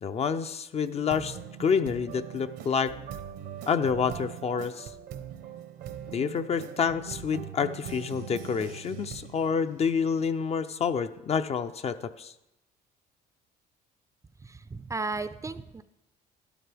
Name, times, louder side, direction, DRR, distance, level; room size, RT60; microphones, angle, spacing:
voice 1, 0.0-2.9 3.7-4.9 6.1-12.3, left 6 dB, 40° left, 10 dB, 0.5 m, -28 dB
sound 1, 0.8-10.5, right 9 dB, 80° right, 0.9 m, -42 dB
voice 2, 14.5-15.8, right 3 dB, 20° right, 12 dB, 0.4 m, -34 dB
12.0 x 12.0 x 3.4 m, 0.90 s
cardioid pair, 110°, 17 cm